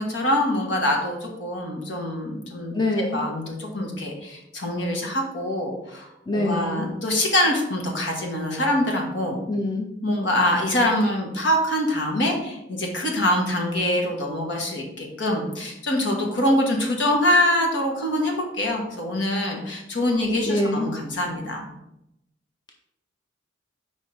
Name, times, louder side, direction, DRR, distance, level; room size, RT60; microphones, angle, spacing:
voice 1, 0.0-9.4 10.0-21.7, left 1 dB, 65° left, 1 dB, 1.4 m, -24 dB
voice 2, 2.7-3.2 6.3-6.9 9.5-9.9 20.5-20.9, left 2 dB, 25° left, 0 dB, 0.6 m, -25 dB
5.1 x 3.6 x 5.4 m, 0.85 s
head